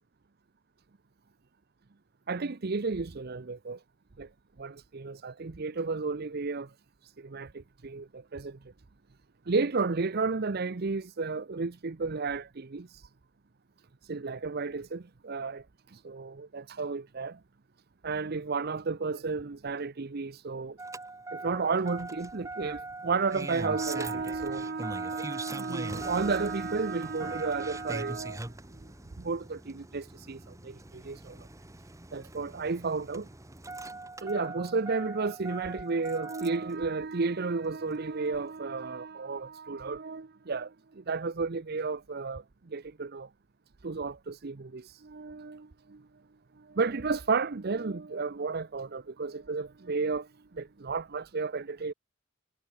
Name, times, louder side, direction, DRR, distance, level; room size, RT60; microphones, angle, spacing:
voice 1, 2.3-3.8 4.2-4.3 4.6-6.7 7.0-8.6 9.5-13.1 14.0-17.4 18.0-20.8 21.3-28.5 29.2-31.5 32.1-33.3 34.2-43.3 43.8-46.1 46.6-51.9, right 4 dB, 55° right, 0.7 m, -33 dB
Engine starting, 20.8-36.7 38.0-38.1, right 2 dB, 15° right, 1.3 m, -41 dB
head